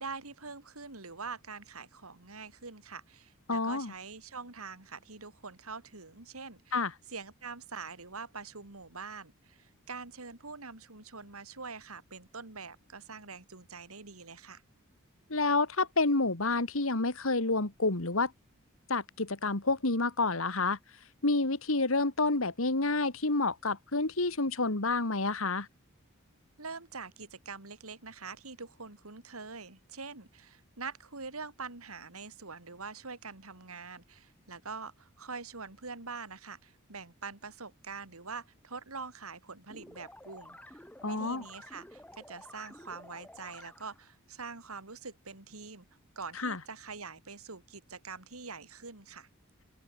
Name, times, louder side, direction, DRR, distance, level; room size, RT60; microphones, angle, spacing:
voice 1, 0.0-6.8 7.1-14.6 26.6-45.9 46.2-49.3, right 4 dB, 90° right, 3.5 m, -44 dB
voice 2, 3.5-3.9 6.7-6.9 15.3-18.3 18.9-20.8 21.2-25.7 41.0-41.4 46.4-46.6, left 3 dB, 70° left, 2.1 m, -29 dB
sound 1, 39.7-44.1, left 1 dB, 5° left, 5.3 m, -52 dB
open air
head